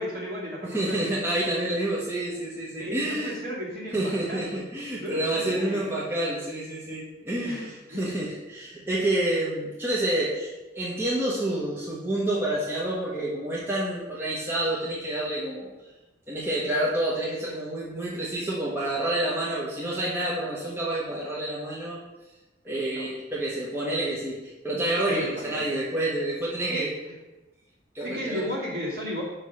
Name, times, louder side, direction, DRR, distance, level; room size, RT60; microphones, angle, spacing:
voice 1, 0.0-1.1 2.8-4.6 5.0-6.0 7.4-8.1 18.9-19.1 22.7-23.1 25.1-25.6 26.7-27.1 28.0-29.2, equal, 55° right, -5 dB, 2.3 m, -35 dB
voice 2, 0.6-3.3 3.9-15.7 16.3-22.0 22.6-26.9 27.9-28.4, right 1 dB, 15° right, -7 dB, 1.0 m, -28 dB
5.4 x 4.7 x 5.7 m, 1.1 s
head